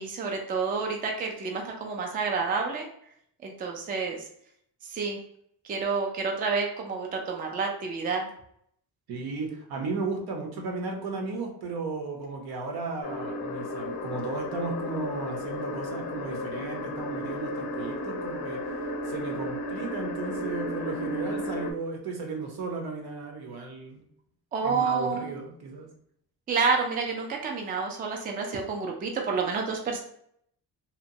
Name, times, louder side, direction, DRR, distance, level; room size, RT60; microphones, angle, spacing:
voice 1, 0.0-2.9 3.4-4.3 4.8-5.2 5.6-8.3 24.5-25.3 26.5-30.0, right 4 dB, 25° right, 1 dB, 0.3 m, -29 dB
voice 2, 9.1-18.7 19.0-24.0 24.6-25.9, right 3 dB, 75° right, 2 dB, 0.8 m, -35 dB
sound 1, 13.0-21.7, left 1 dB, 90° left, 0.5 m, -33 dB
2.9 x 2.1 x 2.6 m, 0.69 s
cardioid pair, 155°, 38 cm